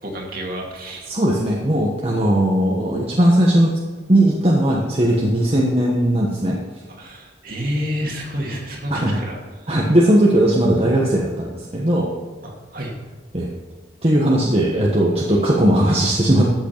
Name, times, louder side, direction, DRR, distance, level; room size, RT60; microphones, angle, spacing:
voice 1, 0.0-1.1 7.0-9.9 12.4-13.0, equal, 50° right, 0 dB, 2.5 m, -29 dB
voice 2, 1.1-3.7 4.1-6.6 8.9-9.2 9.7-12.1 13.3-13.5 14.0-16.5, right 1 dB, 30° right, -3 dB, 1.3 m, -18 dB
13.5 x 8.2 x 4.6 m, 1.4 s
head